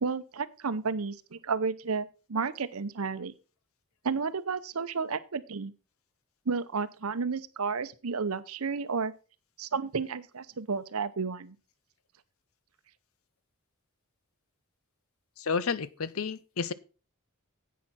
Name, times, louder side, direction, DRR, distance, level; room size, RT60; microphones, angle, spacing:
voice 1, 0.0-3.3 4.0-5.7 6.5-9.1 9.6-11.6, right 5 dB, 80° right, 0.8 m, -32 dB
voice 2, 15.4-16.7, left 5 dB, 70° left, 0.7 m, -31 dB
10.5 x 8.3 x 4.2 m
head